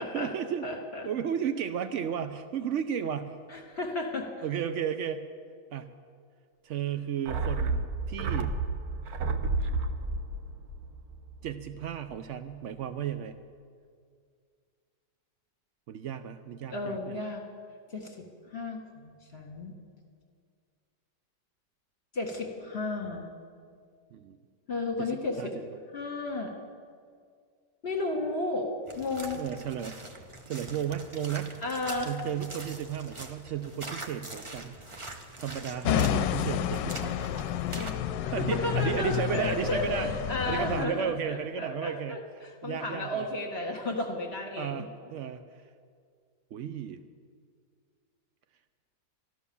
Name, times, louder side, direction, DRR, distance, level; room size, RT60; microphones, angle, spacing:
voice 1, 0.0-0.7 1.1-3.4 4.4-5.2 5.7-5.9 6.6-8.5 11.4-13.4 15.9-17.2 24.1-24.4 25.0-25.1 25.4-25.5 29.4-30.0 30.5-31.6 32.1-34.8 35.4-37.3 37.7-38.0 38.3-40.1 40.5-42.2 42.6-43.3 44.6-45.4 46.5-47.0, right 8 dB, 85° right, 10 dB, 0.6 m, -34 dB
voice 2, 0.6-1.1 3.5-4.3 16.7-17.4 17.9-18.2 18.5-19.7 22.1-23.3 24.7-25.5 25.9-26.6 27.8-28.7 29.0-29.4 31.6-32.1 37.7-44.8, left 2 dB, 35° left, 1 dB, 1.8 m, -33 dB
sound 1, 7.3-11.9 12.1-12.2, right 3 dB, 65° right, 1.2 m, -31 dB
sound 2, 28.9-37.9, right 2 dB, 25° right, 0.6 m, -43 dB
sound 3, 35.9-40.9, left 10 dB, 80° left, 1.2 m, -30 dB
13.5 x 11.5 x 6.9 m, 2.1 s
omnidirectional pair, 1.9 m